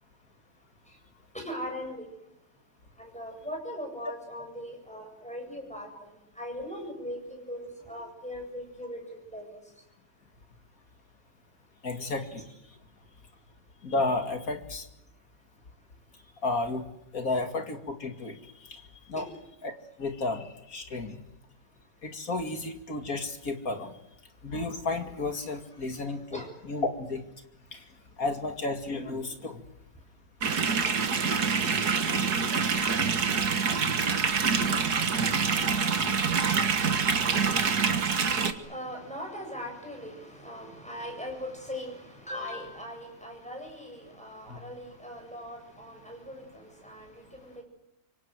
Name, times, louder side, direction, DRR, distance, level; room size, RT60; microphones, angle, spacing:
voice 1, 1.3-2.0 3.0-6.1 6.4-9.6 19.2-19.3 26.3-26.5 36.1-47.6, equal, 5° left, 2 dB, 7.9 m, -40 dB
voice 2, 11.8-12.5 13.8-14.9 16.4-16.8 17.1-18.4 19.1-19.3 19.6-19.7 20.0-21.2 22.0-23.9 24.4-27.2 27.7-27.8 28.2-29.6 32.1-32.5 34.5-34.8 35.1-35.3 36.2-36.3 44.5-44.6, left 2 dB, 50° left, 5 dB, 2.6 m, -32 dB
sound 1, 30.4-38.5, right 5 dB, 60° right, 2.0 m, -26 dB
26.5 x 24.0 x 7.9 m, 0.85 s
omnidirectional pair, 1.9 m